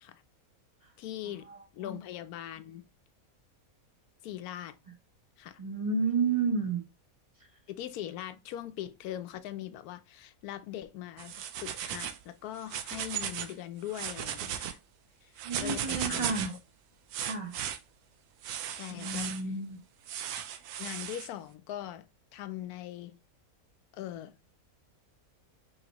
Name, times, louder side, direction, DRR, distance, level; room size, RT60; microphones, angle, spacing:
voice 1, 1.0-1.5 1.7-2.9 4.2-4.8 5.4-5.6 7.7-11.3 11.6-14.8 15.2-15.3 15.6-16.6 18.7-19.4 20.8-23.2 23.9-24.4, left 12 dB, 85° left, 1.1 m, -41 dB
voice 2, 5.6-6.8 15.4-16.5 17.2-17.5 18.9-19.8, right 4 dB, 30° right, 0.7 m, -31 dB
sound 1, 11.2-12.2 12.6-13.5 13.9-14.7 15.4-16.6 17.1-17.8 18.4-19.4 20.1-21.3, right 9 dB, 90° right, 1.1 m, -36 dB
5.4 x 3.1 x 2.9 m
omnidirectional pair, 1.5 m